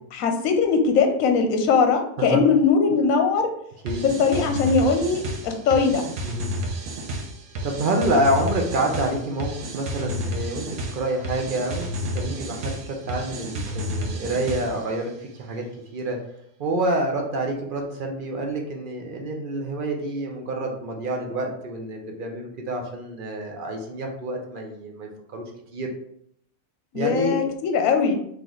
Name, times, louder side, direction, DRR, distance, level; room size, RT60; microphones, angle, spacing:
voice 1, 0.1-3.5 4.0-6.1 26.9-28.2, left 5 dB, 70° left, 5 dB, 1.0 m, -20 dB
sound 1, 3.9-14.9, equal, 75° right, 1.2 m, -31 dB
voice 2, 7.6-15.7 15.9-16.2 16.6-25.4 25.7-25.9 26.9-27.4, right 1 dB, 50° right, 2 dB, 0.7 m, -27 dB
3.9 x 3.3 x 3.0 m, 0.70 s
omnidirectional pair, 1.5 m